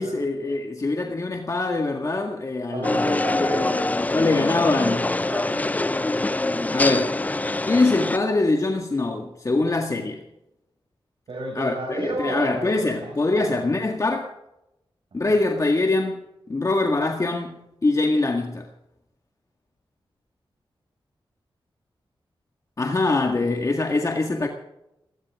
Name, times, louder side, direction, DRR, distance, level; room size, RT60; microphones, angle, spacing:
voice 1, 0.0-3.5 4.1-5.1 6.7-7.2 7.6-10.2 11.6-14.3 15.1-16.2 16.5-18.7 22.8-24.5, left 2 dB, 35° left, 1.8 m, -23 dB
voice 2, 2.7-5.6 11.3-12.7 13.0-13.6 15.2-15.4, right 1 dB, 75° right, 6.3 m, -33 dB
sound 1, 2.8-8.2, left 2 dB, 15° left, 0.5 m, -24 dB
19.5 x 19.0 x 3.7 m
wide cardioid pair, 90°, 9 cm